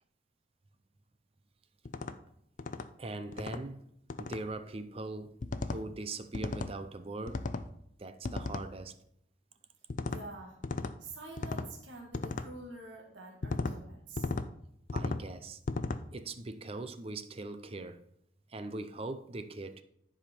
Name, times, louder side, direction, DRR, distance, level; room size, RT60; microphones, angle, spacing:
sound 1, 1.9-2.1 2.6-2.9 3.3-3.6 4.1-4.4 5.4-5.8 6.3-6.7 7.3-7.7 8.2-8.7 9.9-10.2 10.6-10.9 11.4-11.7 12.1-12.5 13.4-13.8 14.2-14.5 14.9-15.2 15.7-16.0, left 3 dB, 45° left, 0.4 m, -35 dB
voice 1, 3.0-3.8 4.2-7.4 8.0-8.9 14.9-15.6 16.1-18.0 18.5-19.8, right 2 dB, 30° right, 0.5 m, -41 dB
voice 2, 10.0-10.6 11.0-14.3, right 2 dB, 90° right, 1.5 m, -47 dB
10.5 x 4.9 x 4.2 m
head